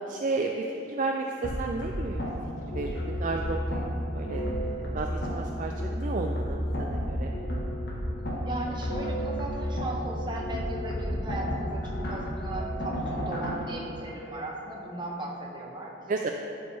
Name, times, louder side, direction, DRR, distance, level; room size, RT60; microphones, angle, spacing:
voice 1, 0.1-2.2 2.7-3.8 4.1-7.3 16.1-16.3, right 3 dB, 40° right, 3 dB, 0.3 m, -32 dB
sound 1, 1.4-13.6, equal, 55° left, 1.3 m, -32 dB
voice 2, 8.5-15.9, right 1 dB, 25° right, -2 dB, 1.0 m, -37 dB
12.0 x 5.2 x 3.4 m, 2.9 s
head